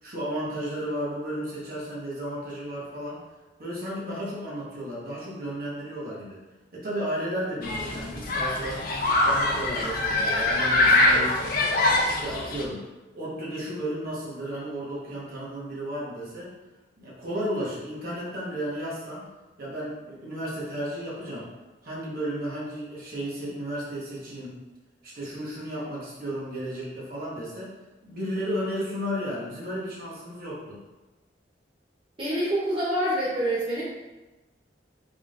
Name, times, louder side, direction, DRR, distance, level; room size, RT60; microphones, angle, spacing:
voice 1, 0.0-3.2 3.6-6.4 6.7-8.9 9.2-11.4 11.9-12.8 13.1-16.5 17.0-19.3 19.6-21.5 21.8-24.6 25.0-27.7 28.0-30.8, equal, 55° right, -6 dB, 1.2 m, -33 dB
Human group actions, 7.6-12.6, left 2 dB, 50° left, 0.5 m, -23 dB
voice 2, 32.2-33.8, right 1 dB, 30° right, -9 dB, 0.7 m, -26 dB
3.7 x 3.4 x 2.4 m, 1.1 s
head